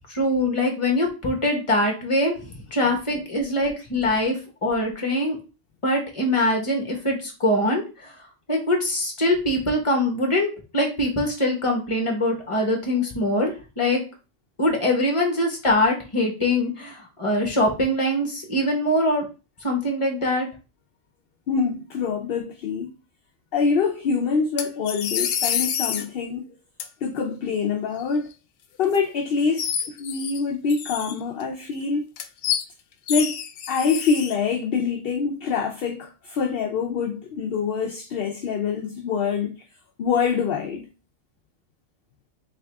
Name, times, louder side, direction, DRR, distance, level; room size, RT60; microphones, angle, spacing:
voice 1, 0.1-5.4 5.8-8.1 8.5-14.0 14.6-19.2 19.6-20.5, left 1 dB, 25° left, 1.2 m, -23 dB
voice 2, 21.5-22.9 23.5-26.4 27.0-28.3 28.8-32.1 33.1-39.6 40.0-40.9, left 5 dB, 60° left, 0.6 m, -25 dB
sound 1, 24.6-26.1 26.8-26.9 28.8-29.0 29.6-30.4 30.7-31.4 32.2-32.6 33.1-34.4, left 9 dB, 80° left, 1.0 m, -27 dB
3.7 x 3.4 x 3.4 m
omnidirectional pair, 1.3 m